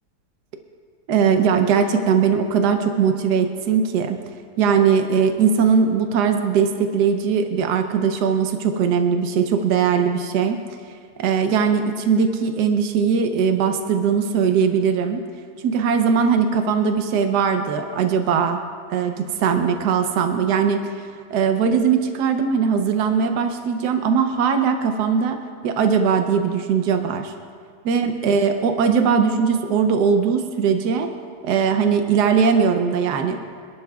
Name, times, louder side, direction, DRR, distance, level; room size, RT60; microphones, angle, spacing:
voice 1, 1.1-4.2 4.6-10.6 11.2-15.2 15.6-18.6 18.9-25.4 25.6-27.3 27.8-31.1 31.4-33.4, right 6 dB, 80° right, 6 dB, 1.3 m, -20 dB
26.5 x 11.0 x 2.3 m, 2.2 s
omnidirectional pair, 1.7 m